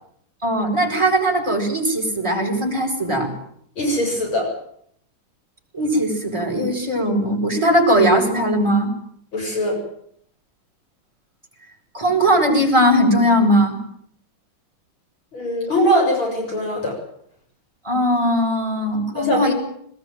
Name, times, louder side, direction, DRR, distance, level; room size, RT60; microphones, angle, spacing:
voice 1, 0.4-3.3 5.7-8.9 11.9-13.8 17.8-19.5, equal, 10° right, -1 dB, 7.5 m, -19 dB
voice 2, 3.8-4.5 9.3-9.8 15.3-17.0 19.1-19.4, equal, 65° left, 1 dB, 8.3 m, -21 dB
22.0 x 20.0 x 9.3 m, 0.68 s
omnidirectional pair, 2.3 m